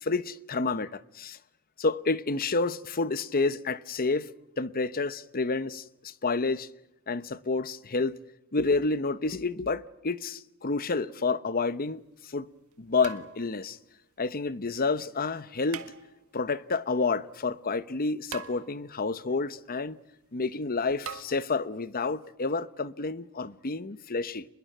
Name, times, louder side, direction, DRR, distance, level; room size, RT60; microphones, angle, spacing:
voice 1, 0.0-1.4 1.8-4.3 4.6-6.7 7.1-8.1 8.5-12.5 12.8-13.8 14.2-15.9 16.3-20.0 20.3-24.5, left 3 dB, 40° left, 0.9 m, -29 dB
sound 1, 11.7-11.8 13.0-13.7 15.7-16.5 18.3-19.1 21.0-21.2, right 7 dB, 75° right, 1.7 m, -42 dB
26.0 x 22.0 x 9.2 m
head